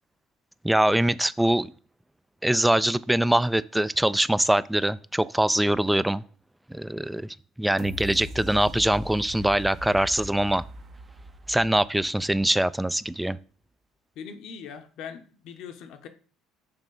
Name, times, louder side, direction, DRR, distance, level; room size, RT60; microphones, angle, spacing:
voice 1, 0.6-1.7 2.4-6.2 6.7-10.6 11.5-13.4, right 1 dB, 5° right, 0.3 m, -23 dB
sound 1, 7.8-12.7 13.1-13.2, right 1 dB, 50° right, 0.9 m, -40 dB
voice 2, 14.2-16.1, left 7 dB, 65° left, 0.9 m, -41 dB
6.9 x 3.0 x 5.3 m
supercardioid pair, 75°, 0 cm